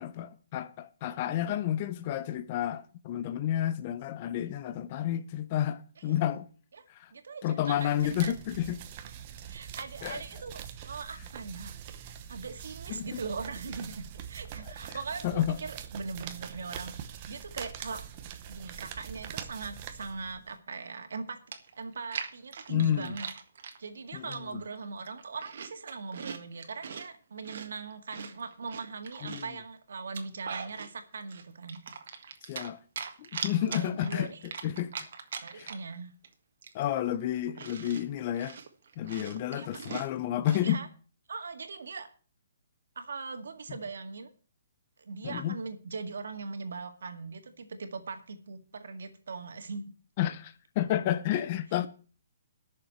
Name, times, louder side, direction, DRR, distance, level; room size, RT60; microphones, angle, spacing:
voice 1, 0.0-6.5 6.9-7.1 7.4-8.8 10.0-10.2 12.9-13.2 15.2-15.6 22.7-23.1 24.1-24.3 29.2-29.4 32.4-32.8 33.2-34.3 34.6-34.9 35.5-35.7 36.7-38.6 39.0-40.8 45.2-45.5 50.2-51.9, left 11 dB, 30° left, 0.6 m, -30 dB
voice 2, 7.1-8.3 9.5-11.7 12.3-16.9 17.3-18.1 18.5-21.4 21.8-23.3 23.8-31.8 33.5-34.5 35.4-36.1 39.5-39.8 40.6-40.9 41.3-42.1 43.0-44.3 45.0-49.9 51.3-51.4, right 4 dB, 80° right, 2.0 m, -40 dB
sound 1, 7.7-20.6, right 9 dB, 30° right, 1.0 m, -44 dB
Chewing mastication, 21.1-21.2 21.5-23.8 24.3-24.7 25.0-27.1 27.4-29.6 30.0-30.9 31.3-32.7 33.0-36.0 36.2-36.3 36.6-40.7, right 6 dB, 60° right, 1.7 m, -41 dB
11.0 x 6.7 x 7.9 m
hypercardioid pair, 165°, 0 cm